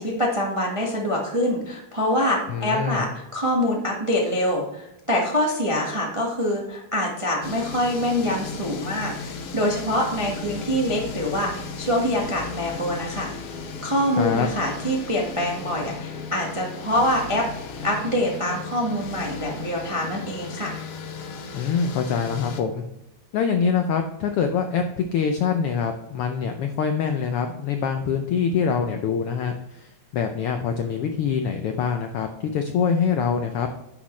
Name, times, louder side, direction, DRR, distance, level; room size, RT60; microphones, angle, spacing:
voice 1, 0.0-13.3 13.8-17.4 17.8-20.8, equal, 35° right, -2 dB, 0.4 m, -25 dB
voice 2, 2.5-3.1 14.2-14.5 21.5-22.8 23.3-33.7, left 6 dB, 90° left, 6 dB, 1.2 m, -24 dB
sound 1, 7.4-22.6, left 5 dB, 65° left, 1.7 m, -35 dB
9.8 x 6.2 x 3.1 m, 0.88 s
omnidirectional pair, 3.3 m